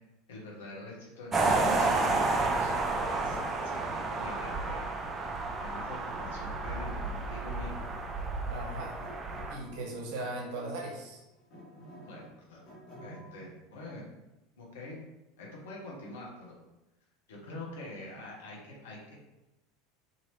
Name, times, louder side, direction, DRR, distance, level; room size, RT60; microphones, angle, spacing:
voice 1, 0.3-2.8 3.1-3.4 3.6-4.8 5.6-7.9 12.0-12.6 13.0-14.0 14.6-15.0 15.4-16.6 17.3-19.2, left 2 dB, 65° left, -3 dB, 0.9 m, -45 dB
sound 1, 1.3-9.6, right 3 dB, 25° right, 0.5 m, -31 dB
sound 2, 2.3-5.2 5.4-8.1 9.0-10.6 11.0-13.5, right 1 dB, 40° left, 1.3 m, -51 dB
voice 2, 8.5-8.9 9.5-11.2, right 2 dB, 55° right, -2 dB, 0.9 m, -38 dB
2.8 x 2.7 x 3.0 m, 0.98 s
figure-of-eight pair, 75°, 0 cm